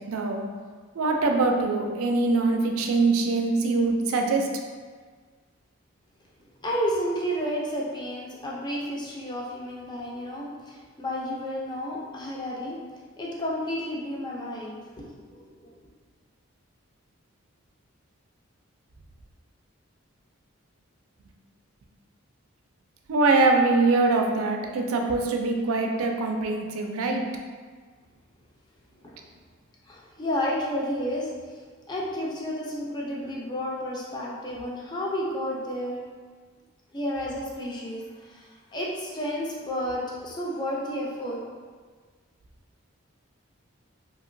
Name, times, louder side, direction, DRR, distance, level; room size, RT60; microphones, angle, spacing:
voice 1, 0.1-0.4 1.0-4.5 23.1-27.2, right 3 dB, 90° right, 3 dB, 0.4 m, -23 dB
voice 2, 6.6-12.8 13.2-15.8 29.0-29.1 29.9-31.6 31.9-36.0 36.9-41.4, equal, 20° left, -4 dB, 0.4 m, -31 dB
2.8 x 2.8 x 2.5 m, 1.5 s
head